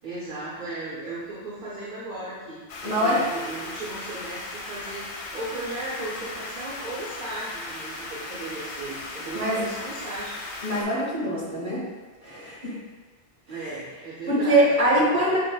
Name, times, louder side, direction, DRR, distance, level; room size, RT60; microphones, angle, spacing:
voice 1, 0.0-5.1 5.3-10.3 13.5-15.4, right 2 dB, 45° right, -8 dB, 0.8 m, -36 dB
sound 1, 2.7-10.8, left 2 dB, 65° left, 0.7 m, -37 dB
voice 2, 2.8-3.2 9.3-9.6 10.6-11.8 12.2-12.7 14.3-15.4, right 1 dB, 30° right, -8 dB, 1.2 m, -23 dB
6.0 x 2.1 x 2.2 m, 1.4 s
omnidirectional pair, 1.2 m